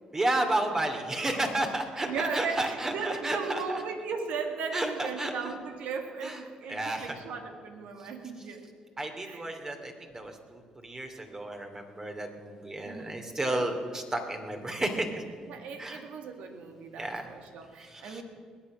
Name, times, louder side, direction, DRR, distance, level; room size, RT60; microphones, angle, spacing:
voice 1, 0.1-3.8 4.7-5.6 6.2-6.4 6.7-7.2 8.0-8.1 8.4-8.5 9.0-15.2 15.8-16.0 17.0-17.2 17.8-18.2, right 1 dB, 25° right, 5 dB, 2.7 m, -32 dB
voice 2, 2.0-8.6 9.2-9.6 12.8-13.2 15.5-18.2, right 5 dB, 75° right, 5 dB, 2.0 m, -36 dB
20.5 x 8.8 x 6.2 m, 2.1 s
supercardioid pair, 65°, 2 cm